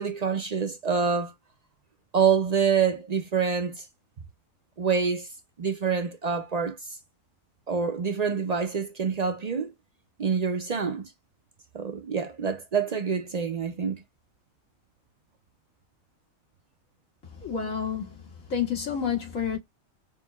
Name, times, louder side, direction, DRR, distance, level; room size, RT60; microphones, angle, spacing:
voice 1, 0.0-1.3 2.1-3.8 4.8-5.3 5.6-6.8 7.7-9.7 10.2-11.0 11.7-14.0, right 6 dB, 65° right, 0.4 m, -26 dB
voice 2, 17.4-19.6, left 7 dB, 85° left, 2.4 m, -29 dB
5.8 x 2.7 x 2.3 m
omnidirectional pair, 1.4 m